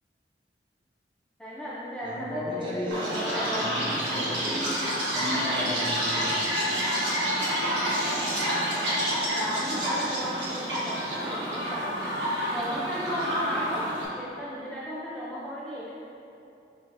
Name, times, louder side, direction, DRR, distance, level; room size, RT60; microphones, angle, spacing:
voice 1, 1.4-4.0 8.2-8.7 9.3-12.1 12.5-13.8 14.2-15.9, equal, 5° left, -9 dB, 0.4 m, -35 dB
voice 2, 2.0-4.8 5.1-6.9, left 1 dB, 25° right, -6 dB, 0.7 m, -35 dB
Chirp tweet, 2.9-14.1, equal, 80° right, 1.0 m, -28 dB
6.1 x 2.7 x 2.5 m, 2.7 s
head